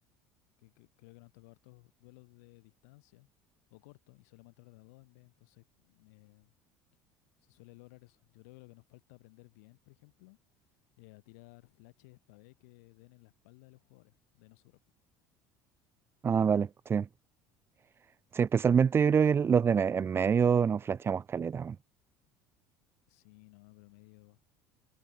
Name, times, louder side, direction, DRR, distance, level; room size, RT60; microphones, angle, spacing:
voice 1, 0.6-3.3 3.7-6.5 7.4-10.4 11.0-14.8 23.1-24.4, left 27 dB, 85° left, 4.5 m, -57 dB
voice 2, 16.2-17.1 18.3-21.8, right 7 dB, 30° right, 0.6 m, -26 dB
supercardioid pair, 95°, 8 cm